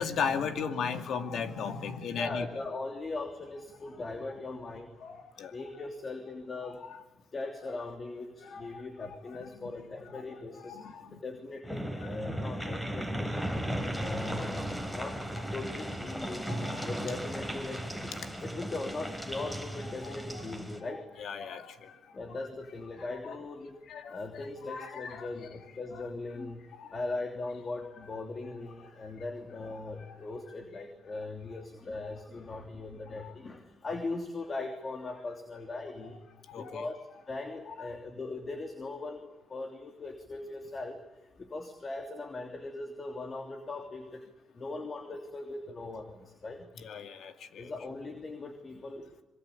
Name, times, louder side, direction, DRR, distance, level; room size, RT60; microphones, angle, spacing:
voice 1, 0.0-2.5 5.0-5.5 6.9-7.0 8.4-8.8 9.4-9.7 10.1-10.2 10.5-11.2 12.0-12.1 13.4-13.7 14.0-14.1 16.5-16.9 19.4-19.5 20.0-20.4 21.2-22.0 22.3-22.4 23.0-23.3 23.9-25.3 25.9-26.0 26.8-27.0 29.0-29.1 29.9-30.2 33.2-33.3 36.5-36.9 46.8-47.7, left 6 dB, 70° left, 7 dB, 2.4 m, -37 dB
voice 2, 2.2-4.9 5.5-6.8 7.3-10.8 11.1-13.4 14.0-14.6 14.9-16.5 16.8-21.1 22.1-23.8 24.1-26.6 26.9-36.2 36.6-37.0 37.3-41.0 41.4-44.2 44.5-46.7 47.6-49.1, left 3 dB, 35° left, 4 dB, 3.0 m, -39 dB
sound 1, 11.6-20.8, equal, 10° left, 4.0 m, -36 dB
26.0 x 23.5 x 8.5 m, 0.98 s
cardioid pair, 90°, 0 cm